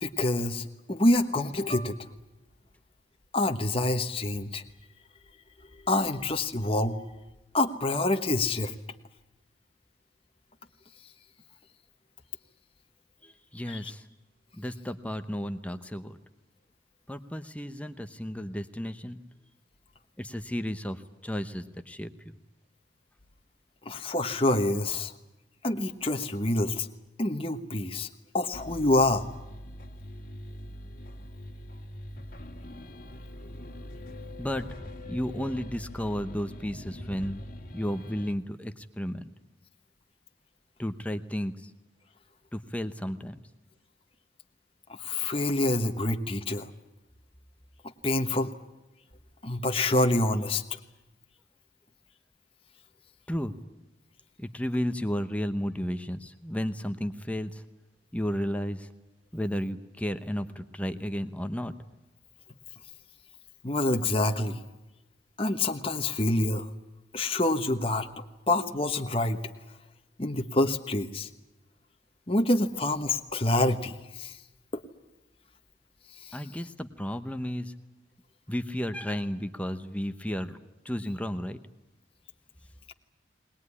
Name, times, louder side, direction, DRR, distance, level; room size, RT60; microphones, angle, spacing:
voice 1, 0.0-2.0 3.3-4.6 5.9-7.0 7.5-8.7 13.7-13.9 23.8-25.1 25.6-26.9 27.2-28.1 28.3-29.3 45.0-46.7 48.0-48.5 49.4-50.6 63.6-64.6 65.4-66.7 67.1-68.1 68.5-69.4 70.2-71.3 72.3-74.4 74.7-74.8, left 2 dB, 30° left, 5 dB, 1.2 m, -26 dB
voice 2, 13.2-14.0 14.6-16.2 17.1-19.2 20.2-22.1 34.4-34.7 35.1-37.4 37.7-39.3 40.8-41.7 42.5-43.4 53.3-53.5 54.4-57.6 58.1-58.9 59.3-61.7 76.3-77.7 78.5-80.6 80.8-81.6, equal, 10° left, 9 dB, 0.9 m, -33 dB
sound 1, 28.5-38.3, left 1 dB, 50° left, 1.8 m, -43 dB
21.0 x 20.5 x 9.8 m, 1.0 s
head